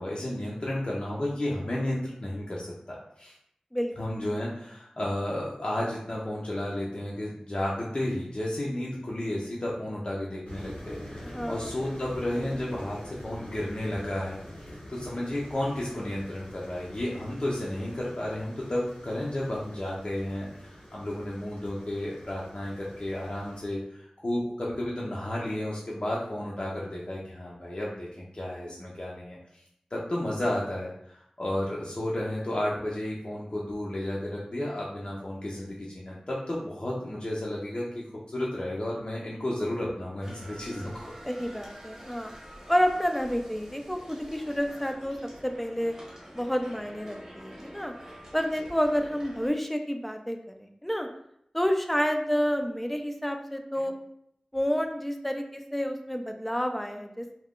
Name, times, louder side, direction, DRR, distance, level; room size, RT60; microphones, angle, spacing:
voice 1, 0.0-3.3 4.0-29.4 29.9-37.8 38.3-41.1, left 1 dB, 50° left, -5 dB, 0.6 m, -32 dB
sound 1, 10.5-23.7, equal, 75° left, 0.8 m, -45 dB
voice 2, 11.3-11.7 41.2-42.3 42.7-45.9 46.3-47.9 48.3-51.1 51.5-53.9 54.5-57.3, equal, 5° left, 5 dB, 0.4 m, -29 dB
sound 2, 40.2-49.5, equal, 20° right, 0.9 m, -47 dB
2.4 x 2.2 x 3.5 m, 0.72 s
wide cardioid pair, 55°, 2 cm